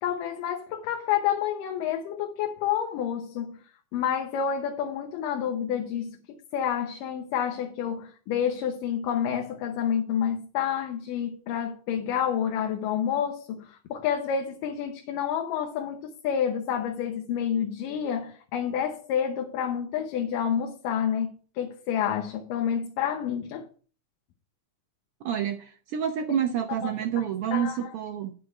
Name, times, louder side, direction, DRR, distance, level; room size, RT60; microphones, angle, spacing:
voice 1, 0.0-3.6 3.9-23.7 26.3-26.4 26.7-26.9 27.2-27.9, left 8 dB, 90° left, 2.6 m, -29 dB
voice 2, 25.2-28.3, right 8 dB, 80° right, 1.3 m, -28 dB
9.6 x 6.8 x 4.6 m
omnidirectional pair, 3.7 m